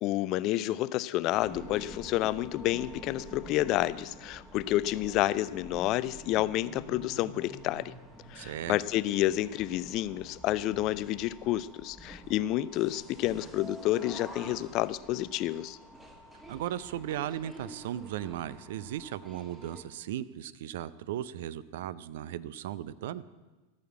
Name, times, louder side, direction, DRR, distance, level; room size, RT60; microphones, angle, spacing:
voice 1, 0.0-7.9 8.3-15.8, left 15 dB, 40° left, 18 dB, 0.4 m, -29 dB
sound 1, 1.3-19.8, equal, 10° right, 1.8 m, -48 dB
voice 2, 8.3-8.8 16.5-23.2, right 11 dB, 55° right, 18 dB, 0.4 m, -36 dB
14.0 x 6.4 x 8.2 m, 1.2 s
figure-of-eight pair, 90°, 0 cm